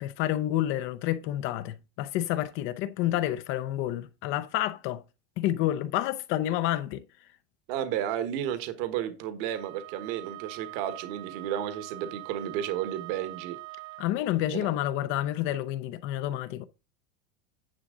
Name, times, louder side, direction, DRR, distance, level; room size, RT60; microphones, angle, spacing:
voice 1, 0.0-5.0 5.4-7.0 14.0-16.6, left 13 dB, 40° left, 0.6 m, -29 dB
voice 2, 7.7-13.6 14.5-14.7, right 10 dB, 55° right, 1.4 m, -32 dB
Wind instrument woodwind instrument, 9.5-14.2, right 25 dB, 40° right, 0.6 m, -43 dB
10.5 x 7.0 x 3.8 m
supercardioid pair, 170°, 33 cm